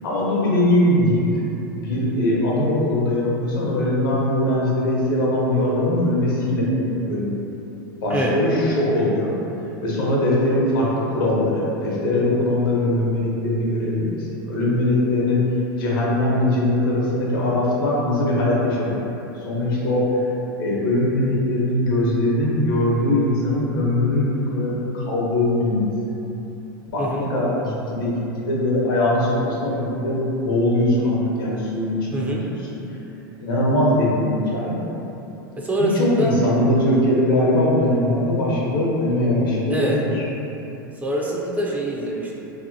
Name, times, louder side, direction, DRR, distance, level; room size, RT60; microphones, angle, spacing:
voice 1, 0.0-1.3 1.8-7.3 8.0-9.3 9.8-15.4 15.8-20.0 20.6-25.9 26.9-32.8 33.4-34.8 35.8-40.2, left 1 dB, 75° left, -5 dB, 0.7 m, -21 dB
voice 2, 32.1-32.5 35.6-36.4 39.7-40.0 41.0-42.4, right 1 dB, 15° right, -3 dB, 0.3 m, -24 dB
2.7 x 2.1 x 2.6 m, 2.9 s
hypercardioid pair, 100°, 12 cm